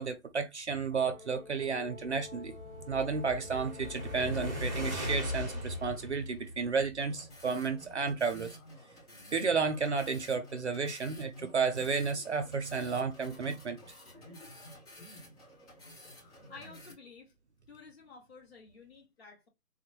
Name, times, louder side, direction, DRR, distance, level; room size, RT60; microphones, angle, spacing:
voice 1, 0.0-2.5 2.9-8.6 9.3-13.8, right 5 dB, 50° right, 0.5 m, -32 dB
Brass instrument, 0.9-5.1, left 4 dB, 80° left, 1.1 m, -50 dB
sound 1, 1.8-7.3, left 1 dB, ahead, 0.7 m, -38 dB
sound 2, 7.0-16.9, left 1 dB, 25° left, 1.8 m, -52 dB
voice 2, 16.5-17.3 17.7-19.5, left 4 dB, 45° left, 1.4 m, -52 dB
3.7 x 2.1 x 3.0 m
hypercardioid pair, 170°, 45 cm